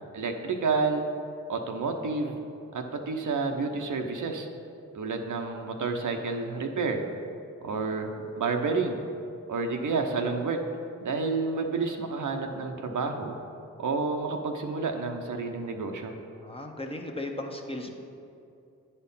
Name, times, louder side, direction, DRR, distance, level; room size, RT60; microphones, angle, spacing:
voice 1, 0.1-1.0 1.5-2.4 2.7-4.5 4.9-7.0 7.6-9.0 9.5-10.6 11.0-13.3 13.8-16.1, right 4 dB, 65° right, 4 dB, 0.9 m, -29 dB
voice 2, 16.4-18.0, left 1 dB, 15° left, 2 dB, 1.1 m, -36 dB
9.6 x 4.3 x 5.6 m, 2.6 s
supercardioid pair, 45°, 34 cm